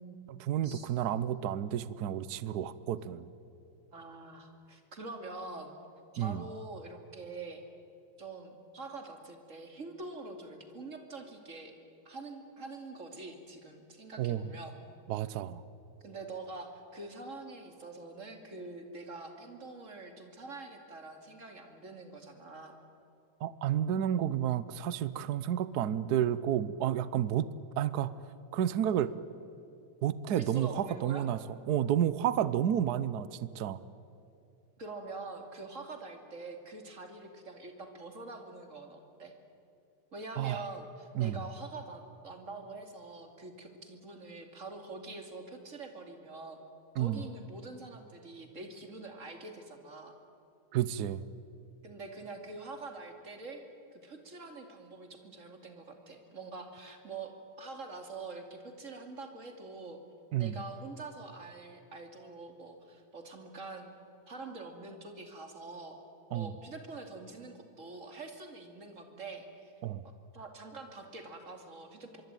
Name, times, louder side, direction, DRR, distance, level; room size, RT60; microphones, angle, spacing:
voice 1, 0.3-3.3 6.2-6.5 14.2-14.5 15.1-15.6 23.4-27.5 27.8-28.2 28.5-29.1 30.0-31.4 31.7-33.8 40.4-40.6 41.1-41.4 47.0-47.2 50.7-51.2 60.3-60.6 66.3-66.5 69.8-70.1, right 10 dB, 60° right, 16 dB, 1.1 m, -31 dB
voice 2, 3.9-5.8 6.1-7.6 8.2-11.7 12.0-14.8 16.0-22.8 30.3-31.3 34.8-39.3 40.1-46.6 46.9-50.2 51.8-53.6 53.9-60.0 60.3-63.9 64.3-66.0 66.3-69.7 70.0-72.2, right 3 dB, 35° right, 5 dB, 3.0 m, -45 dB
25.0 x 23.0 x 9.1 m, 2.7 s
omnidirectional pair, 2.3 m